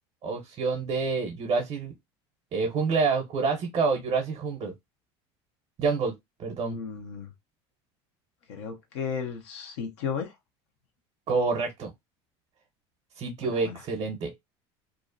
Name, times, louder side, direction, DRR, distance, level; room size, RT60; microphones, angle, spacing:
voice 1, 0.2-1.9 2.5-4.7 5.8-6.1 6.4-6.8 11.3-11.9 13.2-14.3, right 4 dB, 40° right, 0.6 m, -27 dB
voice 2, 6.6-7.3 8.5-10.3 13.4-13.8, left 6 dB, 80° left, 0.7 m, -34 dB
2.5 x 2.0 x 2.4 m
hypercardioid pair, 90°, 14 cm